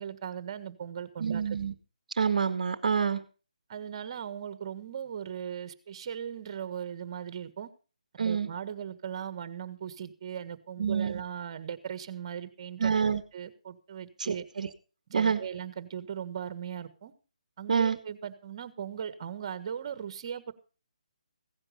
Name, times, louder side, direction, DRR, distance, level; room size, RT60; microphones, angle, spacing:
voice 1, 0.0-1.4 3.7-7.7 8.2-12.9 13.3-14.5 15.1-17.1 17.6-20.5, right 8 dB, 40° right, 1.5 m, -38 dB
voice 2, 1.2-1.7 2.2-3.2 8.2-8.5 10.8-11.2 12.8-13.2 14.2-14.7 15.1-15.4 17.7-18.0, right 6 dB, 60° right, 1.1 m, -27 dB
16.0 x 9.8 x 5.1 m
hypercardioid pair, 155°, 4 cm